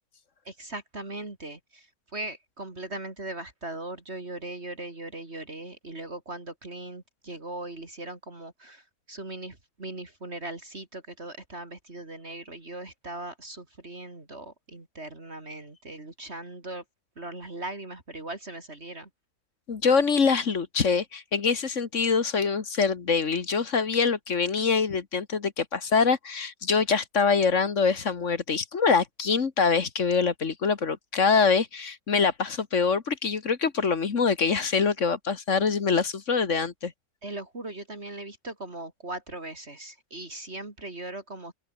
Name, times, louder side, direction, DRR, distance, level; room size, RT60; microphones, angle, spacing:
voice 1, 0.5-16.8 17.2-19.1 37.2-41.5, right 2 dB, 45° right, 3.7 m, -39 dB
voice 2, 19.7-36.9, left 5 dB, 55° left, 1.8 m, -24 dB
omnidirectional pair, 1.6 m